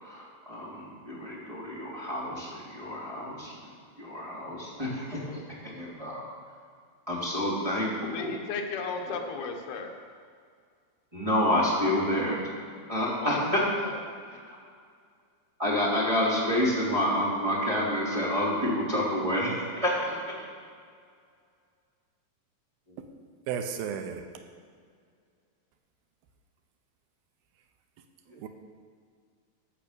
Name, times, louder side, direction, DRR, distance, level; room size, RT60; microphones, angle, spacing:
voice 1, 0.0-3.7 4.0-6.3 7.1-7.9 8.2-8.3 9.1-9.2 11.1-12.5 12.9-13.6 14.5-14.6 15.6-20.4, left 1 dB, 10° right, -7 dB, 3.0 m, -29 dB
voice 2, 8.1-9.9 13.2-14.0 14.3-14.4, left 4 dB, 85° left, 3 dB, 3.0 m, -35 dB
voice 3, 23.5-24.2 28.3-28.5, right 7 dB, 80° right, 6 dB, 2.6 m, -33 dB
15.0 x 5.9 x 6.8 m, 2.1 s
omnidirectional pair, 4.3 m